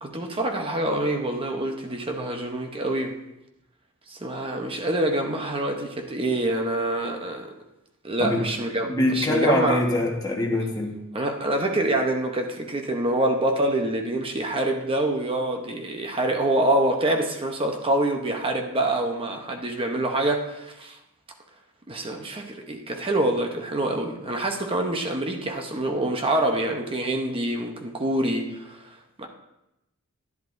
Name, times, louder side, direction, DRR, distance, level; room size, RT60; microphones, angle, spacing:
voice 1, 0.0-3.1 4.1-7.5 8.0-9.8 11.1-21.0 21.9-28.8 29.2-29.3, right 1 dB, 25° right, 3 dB, 0.9 m, -26 dB
voice 2, 8.9-11.0, left 1 dB, 15° left, -1 dB, 1.4 m, -23 dB
11.0 x 10.5 x 2.6 m, 0.91 s
head